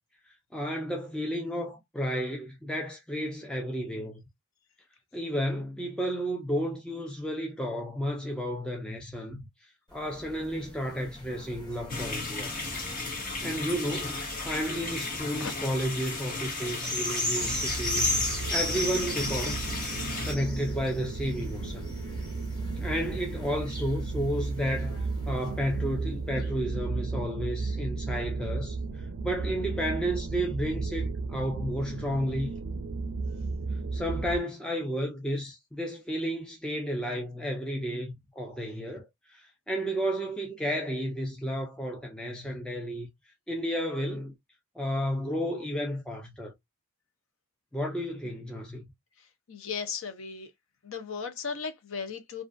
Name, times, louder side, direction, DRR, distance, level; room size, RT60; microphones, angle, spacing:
voice 1, 0.2-4.2 5.1-12.5 13.4-19.7 20.2-21.9 22.8-32.5 33.9-43.1 43.5-44.3 44.8-46.5 47.7-48.9, equal, 5° left, 0.3 m, -32 dB
sound 1, 9.9-25.8 26.4-26.5, left 1 dB, 20° left, 1.3 m, -37 dB
sound 2, 11.9-20.3, left 3 dB, 40° left, 0.8 m, -35 dB
sound 3, 17.4-34.4, right 3 dB, 80° right, 0.4 m, -34 dB
voice 2, 49.5-50.5 50.8-52.4, left 5 dB, 70° left, 0.6 m, -36 dB
2.4 x 2.3 x 2.4 m
head